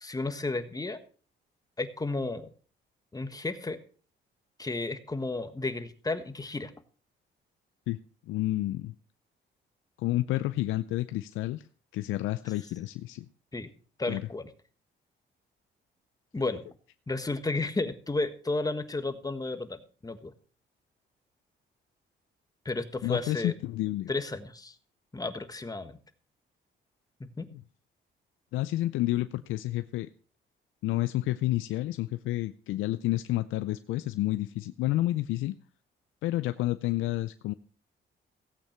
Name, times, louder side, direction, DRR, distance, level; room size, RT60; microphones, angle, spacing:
voice 1, 0.0-1.0 1.8-2.5 3.1-3.8 4.6-6.7 13.5-13.7 14.0-14.5 16.3-16.7 17.1-20.3 22.6-23.5 24.1-24.7 25.1-26.0 27.2-27.5, left 2 dB, 20° left, 1.4 m, -32 dB
voice 2, 8.3-8.9 10.0-11.7 11.9-13.3 14.1-14.2 23.0-24.1 27.5-27.6 28.5-30.1 30.8-35.6 36.2-37.5, left 16 dB, 90° left, 0.5 m, -30 dB
16.5 x 8.4 x 4.5 m
cardioid pair, 90°, 20 cm